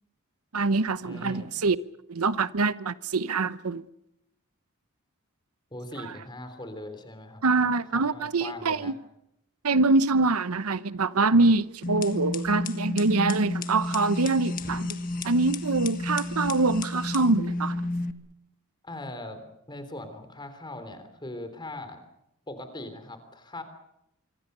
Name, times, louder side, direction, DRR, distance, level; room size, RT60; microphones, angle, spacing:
voice 1, 0.5-1.8 2.1-3.8 7.4-8.9 9.6-15.0 15.2-17.8, right 3 dB, 85° right, 0.9 m, -24 dB
voice 2, 1.0-1.5 5.7-8.9 18.8-19.4 19.7-22.0 22.5-23.6, left 1 dB, 20° left, 3.5 m, -40 dB
sound 1, 11.8-18.1, left 2 dB, 40° left, 1.6 m, -31 dB
25.0 x 25.0 x 6.8 m
head